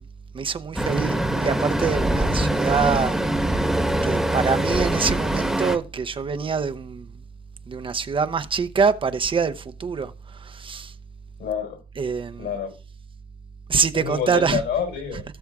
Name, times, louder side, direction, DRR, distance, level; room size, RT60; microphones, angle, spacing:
voice 1, 0.3-3.6 4.0-7.1 7.7-10.9 12.0-12.5 13.7-14.6, right 5 dB, 30° right, 0.6 m, -25 dB
Traffic noise roadway noise, 0.8-5.8, right 1 dB, ahead, 1.1 m, -23 dB
voice 2, 11.4-11.8 12.4-12.7 13.9-15.2, left 7 dB, 70° left, 4.5 m, -28 dB
17.5 x 7.0 x 2.4 m
cardioid pair, 110°, 17 cm